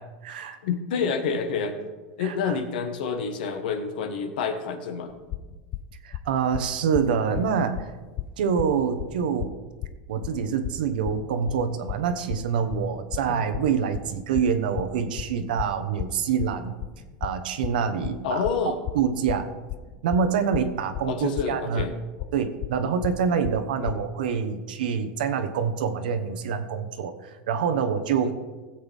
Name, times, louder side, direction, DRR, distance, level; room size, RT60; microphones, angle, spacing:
voice 1, 0.0-0.6 2.2-2.6 6.0-7.9 8.4-9.5 10.1-16.7 17.2-18.4 18.9-19.4 20.0-21.9 22.3-28.3, right 6 dB, 85° right, 9 dB, 1.2 m, -26 dB
voice 2, 0.6-1.7 2.2-5.1 13.3-13.5 18.2-18.8 21.0-21.9 23.8-23.9 28.2-28.3, left 6 dB, 80° left, 7 dB, 1.5 m, -28 dB
sound 1, 5.1-23.9, left 14 dB, 35° left, 0.4 m, -34 dB
16.0 x 8.0 x 3.6 m, 1.3 s
supercardioid pair, 145°, 5 cm